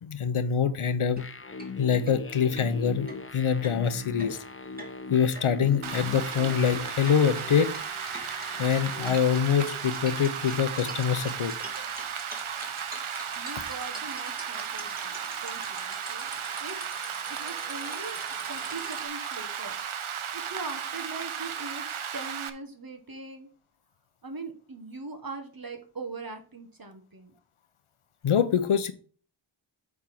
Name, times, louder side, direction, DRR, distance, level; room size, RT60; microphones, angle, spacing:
voice 1, 0.0-1.2 1.8-3.1 3.3-4.4 5.1-7.7 8.6-11.5 28.2-28.9, left 7 dB, 90° left, 11 dB, 0.9 m, -25 dB
sound 1, 1.1-1.2 1.6-1.7 2.1-2.2 2.6-19.1, right 1 dB, 20° right, 2.0 m, -45 dB
sound 2, 1.2-9.1, left 3 dB, 25° left, 0.7 m, -40 dB
Rain, 5.8-22.5, right 7 dB, 80° right, 0.8 m, -35 dB
voice 2, 13.4-16.3 16.6-16.8 17.4-18.2 18.5-19.8 20.3-23.5 24.2-27.3, right 3 dB, 45° right, 5 dB, 1.5 m, -41 dB
8.5 x 3.7 x 5.9 m, 0.41 s
wide cardioid pair, 70°, 48 cm